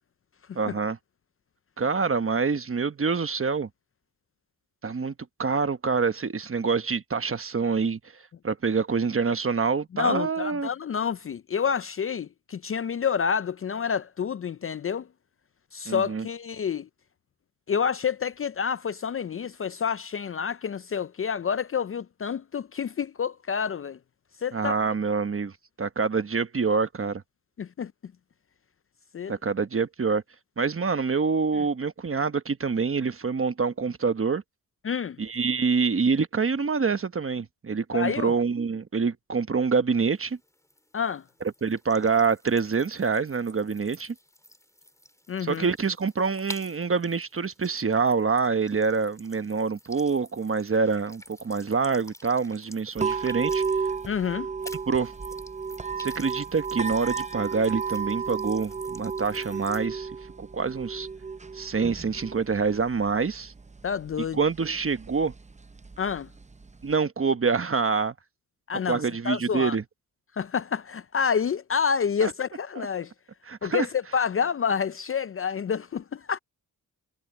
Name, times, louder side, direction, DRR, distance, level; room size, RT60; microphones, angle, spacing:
voice 1, 0.5-1.0 1.8-3.7 4.8-5.1 5.4-8.0 8.4-10.7 15.9-16.3 24.5-25.5 25.8-27.2 29.3-30.2 30.6-34.4 35.2-40.4 41.6-44.1 45.4-53.6 54.9-55.1 56.0-60.1 60.4-61.1 61.5-63.5 64.3-65.3 66.8-68.1 68.9-69.8 72.2-72.3 73.5-73.9, right 5 dB, 40° right, 1.1 m, -26 dB
voice 2, 9.9-15.1 15.7-16.9 17.7-24.0 24.4-24.7 27.6-27.9 29.1-29.3 31.6-31.7 34.8-35.2 37.9-38.3 40.9-41.2 45.3-45.7 54.1-54.5 63.8-64.4 66.0-66.3 68.7-69.8 70.4-73.1 73.6-76.4, left 7 dB, 40° left, 0.4 m, -28 dB
sound 1, 40.1-54.3 54.6-59.9, left 1 dB, 10° left, 4.4 m, -49 dB
sound 2, 53.0-67.0, right 5 dB, 20° right, 0.7 m, -34 dB
wide cardioid pair, 95°, 34 cm